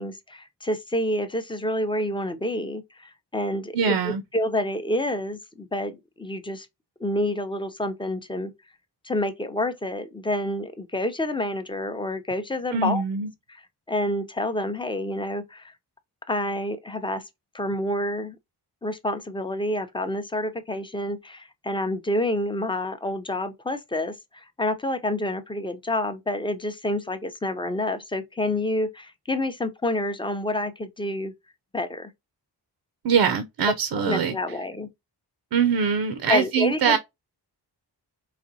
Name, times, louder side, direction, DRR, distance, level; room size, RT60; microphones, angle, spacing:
voice 1, 0.0-6.7 7.0-8.5 9.0-13.0 13.5-15.7 16.3-17.2 17.5-18.4 18.8-31.3 31.7-32.1 34.0-34.9 36.3-37.0, left 1 dB, 10° left, 0.5 m, -28 dB
voice 2, 3.7-4.2 12.7-13.3 33.0-34.3 35.5-37.0, right 6 dB, 75° right, 0.6 m, -23 dB
5.0 x 2.9 x 2.7 m
wide cardioid pair, 165°, 41 cm